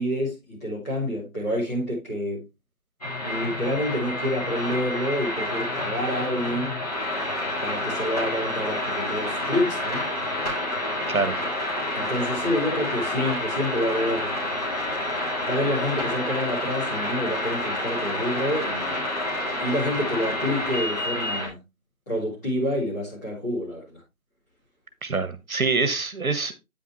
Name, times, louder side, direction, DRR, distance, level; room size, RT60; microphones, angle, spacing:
voice 1, 0.0-2.4 3.2-6.8 7.6-10.1 11.9-14.3 15.5-19.0 19.6-21.5 22.1-23.9, left 1 dB, 10° left, 3.3 m, -28 dB
sound 1, 3.0-21.5, left 1 dB, 25° left, 2.8 m, -29 dB
voice 2, 11.1-11.4 25.0-26.6, right 4 dB, 80° right, 1.5 m, -25 dB
9.1 x 5.9 x 3.1 m
figure-of-eight pair, 170°, 42 cm